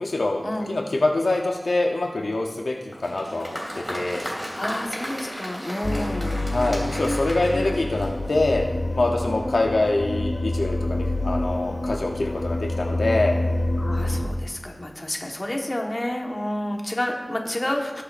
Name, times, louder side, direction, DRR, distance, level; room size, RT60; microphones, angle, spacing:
voice 1, 0.0-0.4 0.7-3.6 3.9-4.2 6.5-8.6 9.0-13.4, left 2 dB, 85° left, 1 dB, 0.8 m, -24 dB
Applause, 2.9-8.5, equal, 5° right, 2.4 m, -35 dB
voice 2, 4.2-6.4 13.8-17.9, left 1 dB, 35° left, 1 dB, 1.3 m, -29 dB
sound 1, 5.8-14.3, left 1 dB, 55° left, 0.8 m, -27 dB
18.0 x 6.8 x 2.5 m, 1.4 s
wide cardioid pair, 70°, 0 cm